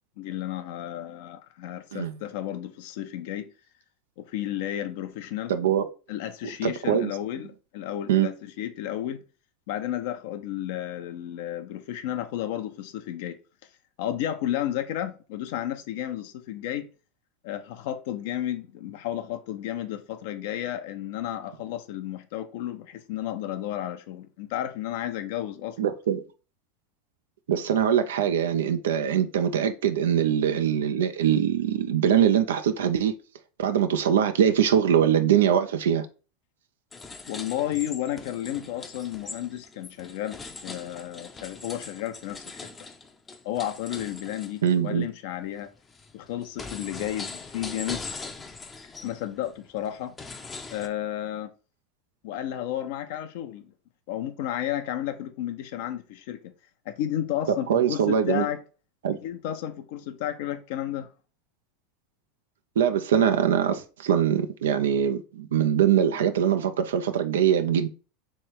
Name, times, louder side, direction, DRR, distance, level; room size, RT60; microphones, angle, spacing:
voice 1, 0.2-3.5 4.2-5.5 6.1-9.2 9.7-13.4 14.0-16.9 17.4-25.9 37.3-42.7 43.4-45.7 46.1-48.0 49.0-50.1 50.7-51.5 52.2-53.7 54.1-56.5 56.9-58.6 59.2-61.1, left 12 dB, 65° left, 0.5 m, -32 dB
voice 2, 5.5-5.8 6.6-7.1 8.1-8.3 25.8-26.2 27.5-33.1 33.6-36.1 44.6-45.1 57.7-58.4 59.0-59.2 62.8-67.9, right 9 dB, 85° right, 0.4 m, -23 dB
sound 1, 36.9-44.8 45.3-50.9, left 4 dB, 20° left, 0.5 m, -41 dB
3.2 x 3.1 x 4.5 m
hypercardioid pair, 100°, 0 cm